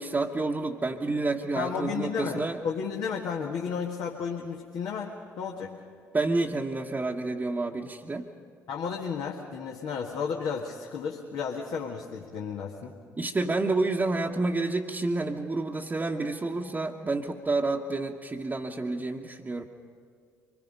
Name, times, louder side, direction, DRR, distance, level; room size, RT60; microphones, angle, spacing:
voice 1, 0.0-2.6 6.1-8.3 13.2-19.7, right 3 dB, 20° right, -2 dB, 1.3 m, -29 dB
voice 2, 1.5-5.7 8.7-12.9, left 6 dB, 55° left, 0 dB, 1.6 m, -33 dB
25.0 x 21.0 x 5.4 m, 2.3 s
figure-of-eight pair, 45°, 8 cm